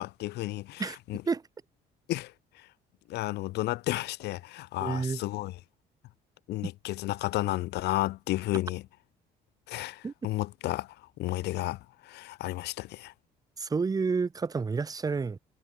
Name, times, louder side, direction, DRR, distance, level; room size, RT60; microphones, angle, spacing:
voice 1, 0.0-1.2 2.1-2.3 2.6-2.7 3.1-5.6 6.5-8.8 9.7-13.1, left 17 dB, 80° left, 1.5 m, -32 dB
voice 2, 4.8-5.2 10.0-10.1 13.6-15.4, right 4 dB, 20° right, 1.1 m, -29 dB
cardioid pair, 110°, 17 cm